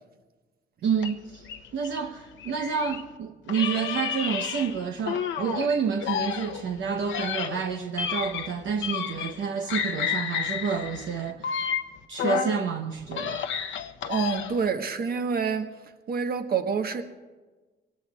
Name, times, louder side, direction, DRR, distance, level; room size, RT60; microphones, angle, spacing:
voice 1, 0.8-11.7 12.1-13.4, right 6 dB, 70° right, 0.9 m, -29 dB
sound 1, 1.0-3.1 3.5-5.7 6.0-9.4 9.7-12.6 13.0-14.7, left 8 dB, 70° left, 0.8 m, -31 dB
voice 2, 14.1-15.7 16.1-17.0, right 5 dB, 50° right, 1.3 m, -27 dB
24.0 x 18.0 x 2.4 m
cardioid pair, 90°, 20 cm